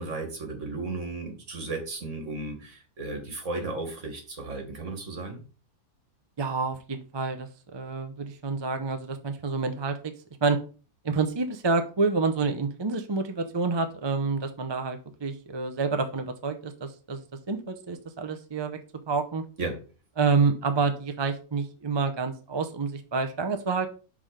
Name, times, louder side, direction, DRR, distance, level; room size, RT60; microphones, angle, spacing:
voice 1, 0.0-5.4 19.6-19.8, right 3 dB, 55° right, 3 dB, 2.2 m, -34 dB
voice 2, 6.4-10.1 10.4-10.6 11.0-18.8 19.1-19.4 20.2-23.9, right 4 dB, 30° right, 7 dB, 0.5 m, -28 dB
5.7 x 4.8 x 5.0 m, 0.35 s
omnidirectional pair, 1.6 m